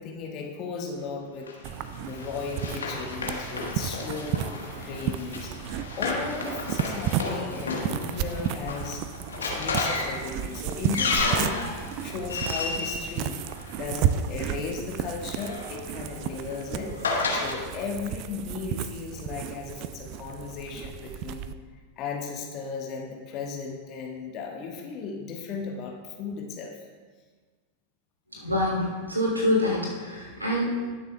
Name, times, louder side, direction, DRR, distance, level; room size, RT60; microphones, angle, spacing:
voice 1, 0.0-1.5 2.0-9.0 9.4-13.4 13.7-21.6 22.0-26.8, left 5 dB, 35° left, 0 dB, 1.4 m, -36 dB
Run, 1.5-14.1 15.1-17.6, left 3 dB, 70° left, 1.3 m, -32 dB
sound 1, 1.6-21.5, right 10 dB, 40° right, 0.4 m, -33 dB
voice 2, 28.3-30.9, left 1 dB, 80° right, -2 dB, 2.8 m, -26 dB
19.5 x 6.7 x 2.3 m, 1.5 s
figure-of-eight pair, 90°, 0 cm